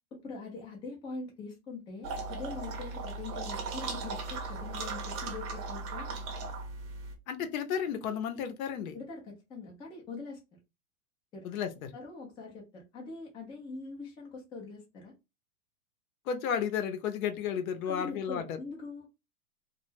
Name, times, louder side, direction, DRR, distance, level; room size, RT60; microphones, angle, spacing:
voice 1, 0.2-6.1 8.9-10.4 11.3-11.5 11.9-15.1 17.9-19.1, left 3 dB, 10° left, 0.4 m, -43 dB
sound 1, 2.0-7.1, right 3 dB, 35° right, 0.7 m, -37 dB
voice 2, 7.3-9.0 11.4-11.9 16.3-18.6, left 8 dB, 60° left, 0.7 m, -33 dB
2.2 x 2.1 x 3.2 m
hypercardioid pair, 125°, 46 cm